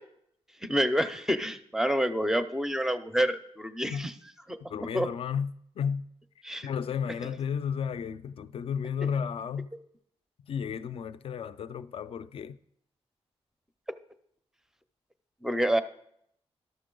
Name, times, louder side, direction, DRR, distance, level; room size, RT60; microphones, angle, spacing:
voice 1, 0.6-4.1 4.5-5.1 6.4-6.7 9.0-9.1 13.9-14.0 15.4-15.8, equal, 5° right, 0.5 m, -28 dB
voice 2, 4.7-6.0 6.6-9.7 10.5-12.6, left 7 dB, 60° left, 0.4 m, -33 dB
12.5 x 6.6 x 3.8 m
wide cardioid pair, 125°, 11 cm